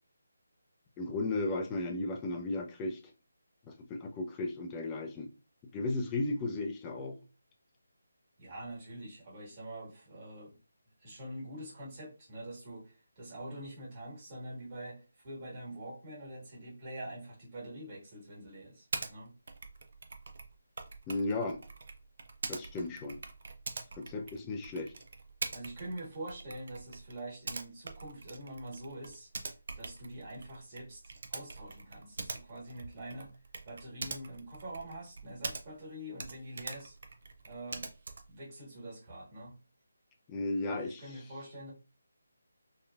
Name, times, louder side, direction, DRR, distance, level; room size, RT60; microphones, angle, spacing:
voice 1, 1.0-3.0 3.7-5.3 5.7-7.2 21.1-21.6 22.5-23.2 24.0-24.9 40.3-41.1, left 2 dB, 15° left, 0.4 m, -35 dB
voice 2, 8.4-10.6 11.0-19.3 24.1-24.3 25.5-29.3 29.7-33.3 33.6-36.9 37.4-37.9 38.3-39.6 40.7-41.7, right 1 dB, 30° right, 1.5 m, -45 dB
Typing, 18.9-19.1 19.5-35.9 36.2-38.4, right 3 dB, 55° right, 0.4 m, -44 dB
2.9 x 2.4 x 2.3 m
figure-of-eight pair, 155°, 0 cm